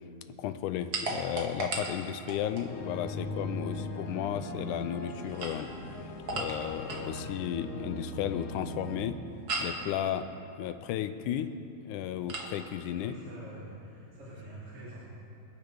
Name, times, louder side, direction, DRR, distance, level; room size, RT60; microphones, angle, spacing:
voice 1, 0.4-5.7 6.3-9.2 9.6-10.3 10.6-11.5 11.9-13.1, left 10 dB, 90° left, 10 dB, 2.1 m, -34 dB
sound 1, 0.9-2.7 5.2-7.1 9.5-9.8 12.3-12.5, right 2 dB, 45° right, 1.2 m, -36 dB
sound 2, 2.7-9.0, left 1 dB, 60° left, 1.5 m, -40 dB
sound 3, 2.8-11.8, left 1 dB, 5° right, 2.4 m, -50 dB
voice 2, 13.0-15.2, right 1 dB, 75° right, -13 dB, 4.9 m, -46 dB
25.5 x 9.9 x 3.5 m, 2.6 s
omnidirectional pair, 3.5 m